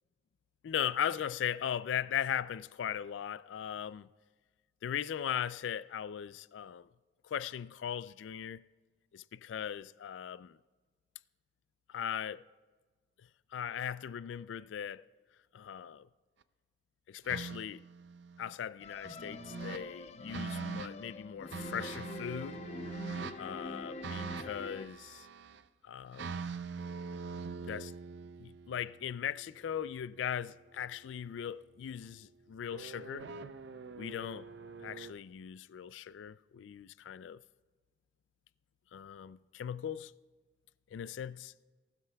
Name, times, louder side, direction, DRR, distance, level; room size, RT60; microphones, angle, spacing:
voice 1, 0.6-4.1 4.8-6.9 7.2-8.6 9.1-10.6 11.9-12.4 13.5-15.0 15.5-16.1 17.1-17.9 18.4-22.6 23.4-25.3 25.8-26.4 27.6-27.9 28.4-33.3 34.0-34.5 34.8-37.4 38.9-40.1 40.9-41.5, left 9 dB, 85° left, 0.3 m, -38 dB
sound 1, 17.3-18.5 19.0-19.8 20.3-20.9 21.5-23.4 24.0-25.6 26.1-30.2 32.7-35.1, right 5 dB, 70° right, 0.5 m, -43 dB
sound 2, 18.8-24.9, left 2 dB, 35° left, 0.5 m, -45 dB
18.0 x 12.5 x 2.3 m
head